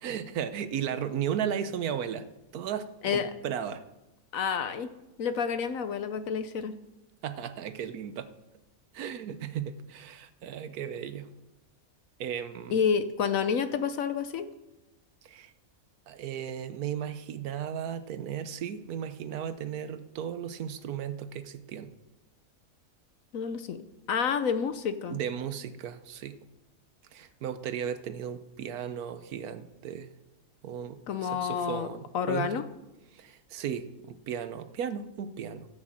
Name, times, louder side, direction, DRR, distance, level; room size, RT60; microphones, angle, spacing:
voice 1, 0.0-2.3 2.5-3.8 7.2-8.3 8.9-11.3 12.2-12.8 15.2-15.5 16.1-21.9 25.1-26.4 27.1-30.1 30.6-32.6 33.1-35.7, right 8 dB, 85° right, 11 dB, 1.3 m, -35 dB
voice 2, 4.3-4.9 5.2-6.7 12.7-14.5 23.3-23.8 24.1-25.2 31.1-31.9 32.1-32.6, left 6 dB, 70° left, 10 dB, 1.1 m, -29 dB
14.5 x 6.6 x 7.6 m, 0.97 s
omnidirectional pair, 1.5 m